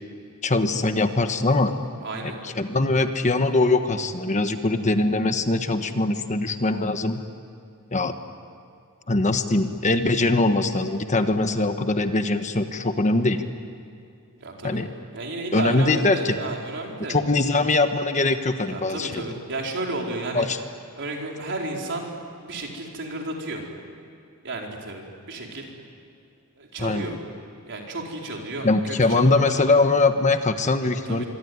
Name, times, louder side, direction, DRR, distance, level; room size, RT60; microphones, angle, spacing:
voice 1, 0.4-1.7 2.2-7.2 7.9-8.1 9.1-13.4 14.6-14.9 15.5-16.4 17.1-19.2 20.3-20.6 26.8-27.1 28.6-31.2, left 2 dB, 35° left, 8 dB, 1.3 m, -22 dB
voice 2, 2.0-2.4 14.4-14.8 15.1-17.2 17.5-17.6 18.7-20.5 21.0-22.1 22.4-23.6 24.4-25.7 26.6-27.2 27.6-29.8 31.0-31.3, right 2 dB, 55° right, 0 dB, 4.6 m, -33 dB
25.5 x 24.0 x 9.6 m, 2.5 s
head